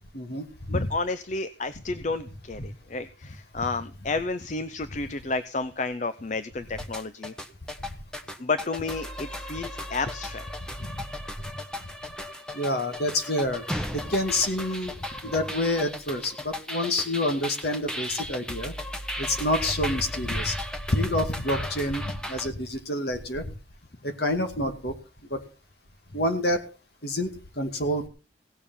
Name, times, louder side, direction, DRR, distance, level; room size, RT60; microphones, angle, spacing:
voice 1, 0.1-0.9 10.8-11.0 11.4-11.5 12.5-13.6 13.9-14.9 15.2-18.7 19.2-20.6 20.9-23.5 24.0-25.0 25.3-25.4 26.1-26.7 27.0-28.1, left 1 dB, 55° left, 6 dB, 2.3 m, -28 dB
voice 2, 0.7-7.3 8.4-10.5 15.2-15.3, left 3 dB, 40° left, 12 dB, 0.7 m, -31 dB
sound 1, 6.8-22.5, left 1 dB, 5° left, 1.1 m, -36 dB
17.0 x 6.8 x 7.0 m, 0.34 s
head